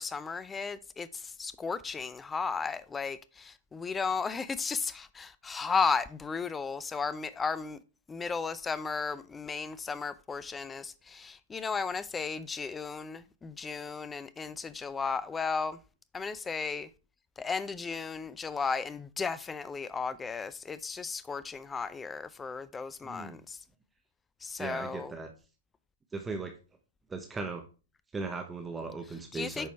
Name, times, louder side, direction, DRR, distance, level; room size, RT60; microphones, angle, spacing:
voice 1, 0.0-7.8 8.1-15.8 16.1-16.9 17.4-23.6 24.4-25.1 29.3-29.7, left 5 dB, 15° left, 0.5 m, -34 dB
voice 2, 23.0-23.4 24.6-25.3 26.1-26.6 27.1-27.6 28.1-29.7, right 4 dB, 10° right, 0.9 m, -38 dB
8.7 x 5.1 x 3.2 m
figure-of-eight pair, 105°, 0 cm